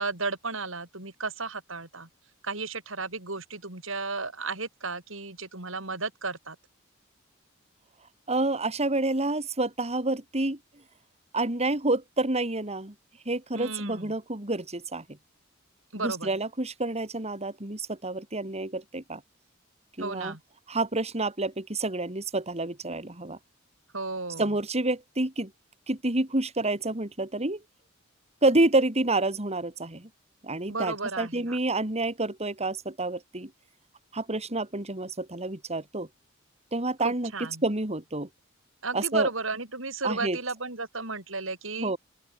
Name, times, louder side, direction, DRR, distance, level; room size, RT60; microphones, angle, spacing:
voice 1, 0.0-2.1 2.4-6.6 13.5-14.1 15.9-16.3 20.0-20.4 23.9-24.5 30.7-31.6 37.0-37.6 38.8-41.9, right 3 dB, 70° right, 8.0 m, -34 dB
voice 2, 8.3-10.6 11.3-12.9 13.2-15.2 15.9-19.2 20.0-20.3 20.7-23.4 24.4-25.5 25.9-27.6 28.4-30.1 30.4-33.5 34.1-36.1 36.7-37.3 37.6-38.3 38.9-39.3 40.0-40.4 41.8-42.0, right 2 dB, 30° right, 3.0 m, -28 dB
open air
head